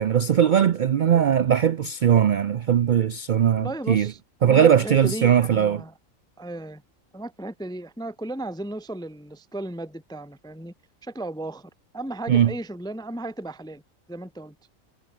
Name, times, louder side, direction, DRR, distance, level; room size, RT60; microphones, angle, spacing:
voice 1, 0.0-4.1 4.4-5.8 12.3-12.5, right 9 dB, 60° right, 0.5 m, -20 dB
voice 2, 3.5-5.9 6.4-6.8 7.1-10.7 11.0-13.8 14.1-14.6, right 1 dB, 5° left, 0.4 m, -35 dB
omnidirectional pair, 1.4 m